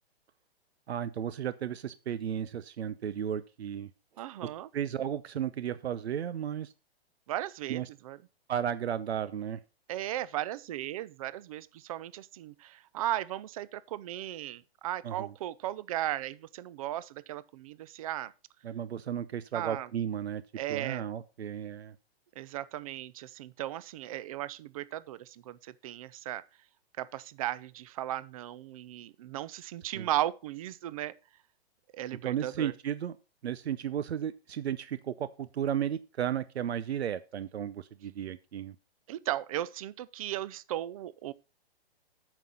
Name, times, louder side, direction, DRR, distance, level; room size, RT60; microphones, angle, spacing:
voice 1, 0.9-3.9 4.7-6.7 7.7-7.9 8.5-9.6 15.0-15.3 18.6-20.4 20.7-21.9 29.9-30.1 32.2-33.2 33.4-38.7, right 9 dB, 90° right, 0.7 m, -34 dB
voice 2, 4.2-4.7 7.3-8.2 9.9-18.3 19.5-19.9 20.6-21.1 22.4-26.4 27.0-31.1 31.9-32.7 39.1-41.3, right 13 dB, 35° right, 0.5 m, -36 dB
9.0 x 6.1 x 5.4 m
hypercardioid pair, 150°, 31 cm